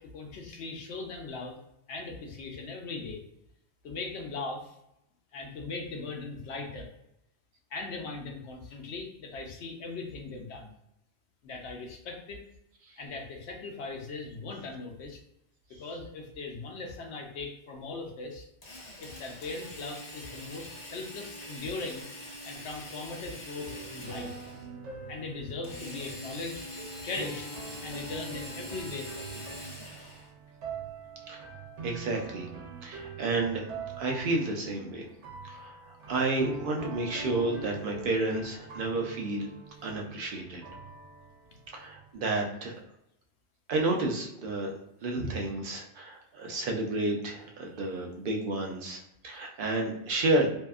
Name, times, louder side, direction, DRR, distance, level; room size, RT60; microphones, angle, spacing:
voice 1, 0.0-1.6 1.9-3.2 3.8-4.7 5.3-6.9 7.7-10.7 11.4-12.4 13.0-15.2 15.8-18.5 19.0-22.1 22.4-24.5 25.1-26.7 27.0-27.5 27.8-29.6, left 3 dB, 75° left, 2 dB, 0.9 m, -39 dB
Drill, 18.6-24.7 25.6-30.3, left 1 dB, 45° left, 0.8 m, -44 dB
sound 1, 23.6-42.1, right 3 dB, 85° right, 1.0 m, -44 dB
voice 2, 31.8-32.5 32.8-33.6 34.0-35.1 35.4-35.7 36.1-39.5 39.8-40.6 41.7-42.7 43.7-44.7 45.0-50.5, right 2 dB, 60° right, 1 dB, 0.7 m, -31 dB
2.7 x 2.4 x 2.3 m, 0.82 s
omnidirectional pair, 1.2 m